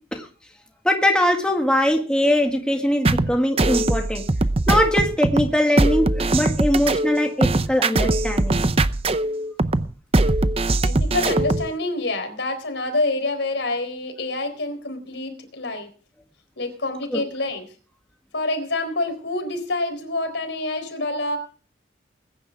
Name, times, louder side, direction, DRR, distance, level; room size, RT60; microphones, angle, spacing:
voice 1, 0.8-4.2 4.7-8.6 17.1-17.2, left 1 dB, 5° left, 1.9 m, -21 dB
sound 1, 3.0-11.7, right 2 dB, 35° right, 0.7 m, -21 dB
voice 2, 10.8-15.9 16.6-17.7 18.3-21.4, left 2 dB, 80° left, 4.1 m, -27 dB
21.0 x 10.5 x 3.6 m
head